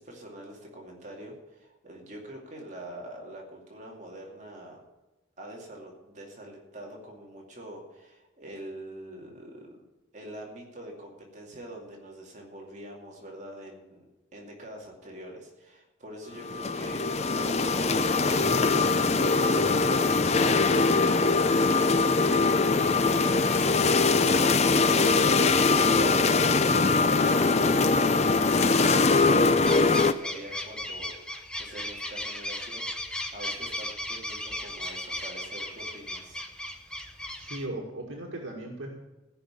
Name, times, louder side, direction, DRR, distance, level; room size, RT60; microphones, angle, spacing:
voice 1, 0.0-4.8 5.4-9.8 10.1-14.0 14.3-36.4, right 1 dB, 35° right, -1 dB, 2.5 m, -44 dB
sound 1, 16.4-30.1, left 3 dB, 30° left, 0.5 m, -22 dB
sound 2, 29.6-37.6, left 1 dB, 5° left, 0.8 m, -36 dB
voice 2, 37.4-39.0, right 1 dB, 80° right, 0 dB, 1.9 m, -37 dB
16.0 x 5.7 x 8.6 m, 1.1 s
head